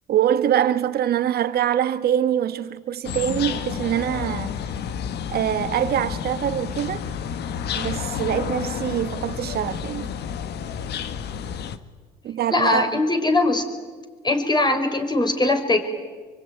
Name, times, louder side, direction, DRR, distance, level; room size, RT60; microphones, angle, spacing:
voice 1, 0.1-4.5 5.3-7.0 7.7-10.1 12.2-13.0, right 10 dB, 55° right, 1.6 m, -24 dB
sound 1, 3.0-11.8, left 8 dB, 60° left, 1.5 m, -30 dB
voice 2, 12.5-13.6 14.2-15.8, left 2 dB, 20° left, 5.0 m, -20 dB
24.0 x 24.0 x 9.4 m
supercardioid pair, 75°, 19 cm